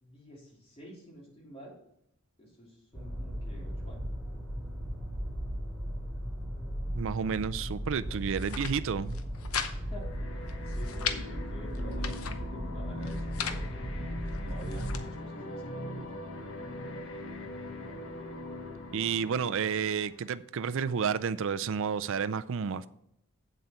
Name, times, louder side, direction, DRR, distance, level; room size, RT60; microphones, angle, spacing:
voice 1, 0.0-1.7 2.4-4.0 8.1-8.2 9.7-10.1 10.6-16.2, equal, 30° left, 3.0 m, -49 dB
sound 1, 2.9-15.0, equal, 5° right, 3.3 m, -37 dB
voice 2, 6.9-9.2 18.9-22.9, right 6 dB, 65° right, 0.4 m, -31 dB
sound 2, 8.2-8.7 9.1-9.7 10.0-10.1 10.5-11.2 11.7-12.4 13.0-13.6 14.3-15.0, left 7 dB, 85° left, 0.8 m, -36 dB
sound 3, 9.8-20.4, left 1 dB, 65° left, 1.3 m, -41 dB
8.2 x 7.8 x 4.4 m
head